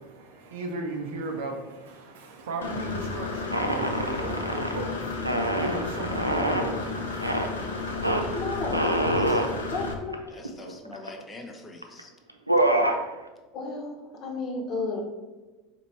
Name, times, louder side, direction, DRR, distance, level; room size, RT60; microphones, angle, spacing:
voice 1, 0.0-8.3, right 2 dB, 65° right, 3 dB, 0.7 m, -36 dB
Engine / Mechanisms, 2.6-9.9, left 3 dB, 70° left, 0.6 m, -32 dB
sound 1, 3.5-4.8 5.2-6.7 7.2-7.5 8.0-8.2 8.7-9.5 10.1-10.2 10.4-11.2 11.8-12.0 12.3-13.0, right 1 dB, 90° right, 0.3 m, -25 dB
voice 2, 8.3-8.9 9.7-10.3 10.8-11.1 13.5-15.0, left 3 dB, 40° left, 1 dB, 0.9 m, -33 dB
voice 3, 9.1-9.5 10.3-12.1, left 2 dB, 20° left, 3 dB, 0.7 m, -45 dB
4.3 x 3.0 x 4.1 m, 1.2 s
figure-of-eight pair, 75°, 0 cm